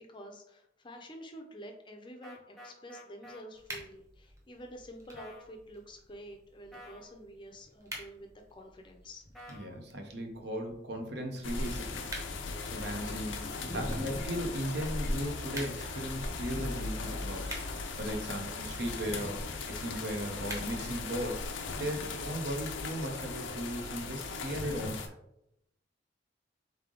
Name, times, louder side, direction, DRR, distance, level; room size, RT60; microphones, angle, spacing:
voice 1, 0.0-9.3 13.6-14.3 16.3-16.8 19.0-19.4 21.7-22.1 24.5-24.9, equal, 25° left, 3 dB, 0.5 m, -46 dB
sound 1, 2.2-3.4 5.2-5.5 6.7-7.1 9.3-9.7, left 1 dB, ahead, 0.8 m, -49 dB
sound 2, 3.5-22.5, right 1 dB, 15° right, 0.9 m, -51 dB
voice 2, 9.5-19.3 19.8-21.5 21.8-24.9, equal, 60° right, 3 dB, 0.8 m, -37 dB
sound 3, 11.4-25.1, left 3 dB, 90° left, 0.6 m, -38 dB
3.7 x 3.4 x 3.8 m, 0.79 s
head